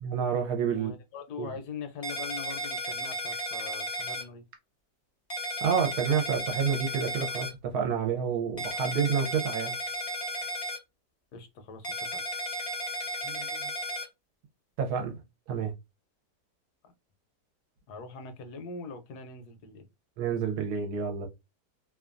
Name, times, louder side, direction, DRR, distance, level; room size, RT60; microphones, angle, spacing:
voice 1, 0.0-0.9 1.4-1.5 5.6-9.8 13.2-13.7 14.8-15.2 15.5-15.7 20.2-21.3, right 6 dB, 70° right, 1.1 m, -29 dB
voice 2, 0.7-4.4 11.3-12.2 17.9-19.9, left 4 dB, 75° left, 1.1 m, -42 dB
sound 1, 2.0-4.2 5.3-7.5 8.6-10.8 11.8-14.0, equal, 45° left, 0.4 m, -34 dB
2.9 x 2.2 x 2.4 m
omnidirectional pair, 1.8 m